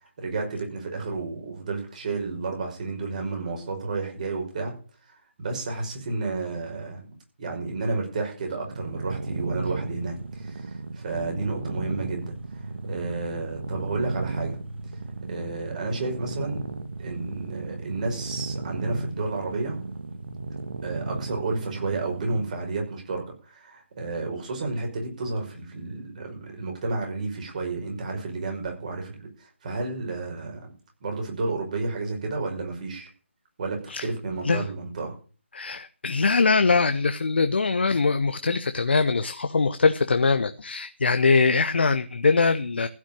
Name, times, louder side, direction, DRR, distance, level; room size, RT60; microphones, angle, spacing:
voice 1, 0.2-4.7 5.1-7.0 7.4-14.6 15.3-16.6 17.0-19.8 20.8-30.7 31.0-33.1 33.6-35.2, right 3 dB, 35° right, 2 dB, 5.4 m, -31 dB
sound 1, 8.7-22.5, right 3 dB, 55° right, 2.1 m, -34 dB
voice 2, 35.5-42.9, left 4 dB, 55° left, 10 dB, 0.9 m, -22 dB
15.5 x 6.3 x 9.0 m, 0.38 s
figure-of-eight pair, 150°, 7 cm